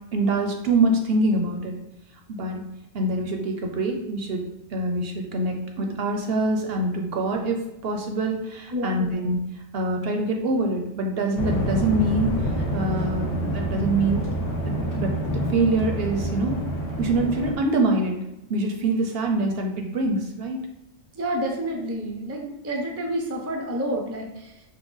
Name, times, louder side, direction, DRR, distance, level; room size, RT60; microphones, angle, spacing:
voice 1, 0.1-1.8 2.3-2.6 2.9-9.4 9.7-12.3 12.7-14.2 14.7-16.6 17.0-18.2 18.5-20.6, right 2 dB, 65° right, 3 dB, 0.8 m, -25 dB
voice 2, 8.7-9.1 21.1-24.6, right 1 dB, 20° right, 1 dB, 0.4 m, -29 dB
sound 1, 11.4-17.5, right 1 dB, 55° left, 1.2 m, -27 dB
5.7 x 2.1 x 3.9 m, 0.88 s
omnidirectional pair, 1.2 m